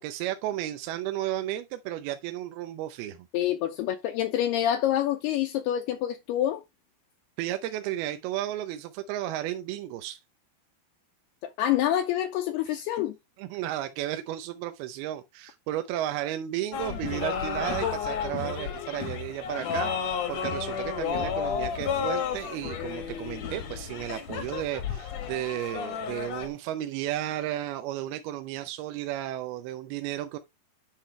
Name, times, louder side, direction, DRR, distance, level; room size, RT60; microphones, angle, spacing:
voice 1, 0.0-3.3 7.4-10.2 12.7-12.8 13.4-30.4, right 13 dB, 75° right, 2.4 m, -33 dB
voice 2, 3.3-6.6 11.4-13.2, left 11 dB, 80° left, 2.5 m, -27 dB
sound 1, 16.7-26.5, left 7 dB, 60° left, 1.8 m, -32 dB
10.0 x 5.4 x 3.2 m
omnidirectional pair, 5.0 m